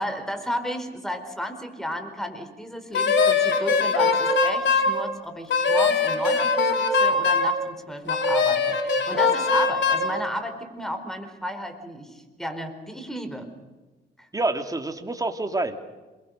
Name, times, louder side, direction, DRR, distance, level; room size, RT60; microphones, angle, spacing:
voice 1, 0.0-13.5 14.2-14.3, equal, ahead, 7 dB, 4.6 m, -33 dB
Wind instrument woodwind instrument, 2.9-4.9 5.5-7.5 8.1-10.1, left 4 dB, 65° left, 4.3 m, -21 dB
voice 2, 14.3-15.8, right 2 dB, 20° right, 6 dB, 2.7 m, -27 dB
28.0 x 23.0 x 6.6 m, 1.2 s
cardioid pair, 90°, 20 cm